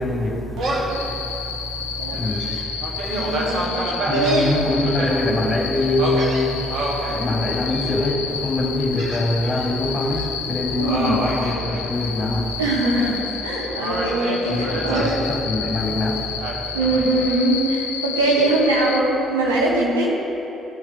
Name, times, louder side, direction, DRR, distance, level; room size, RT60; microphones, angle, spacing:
voice 1, 0.0-2.6 3.0-3.7 4.1-12.6 14.5-16.3, left 2 dB, 25° left, -1 dB, 2.0 m, -24 dB
Gull seagull, 0.6-1.0 1.5-1.6 2.1-5.1 6.0-7.1 7.7-8.1 9.0-9.7 10.0-10.3 10.8-12.4 12.7-13.4 13.8-15.2 16.4-17.4, right 1 dB, 55° right, 1.9 m, -28 dB
sound 1, 0.9-19.0, left 7 dB, 75° left, 0.7 m, -31 dB
voice 2, 3.1-4.5 10.8-11.3 12.6-15.2 16.7-20.1, right 2 dB, 80° right, -4 dB, 1.9 m, -22 dB
16.0 x 7.2 x 3.6 m, 2.9 s
figure-of-eight pair, 50°, 0 cm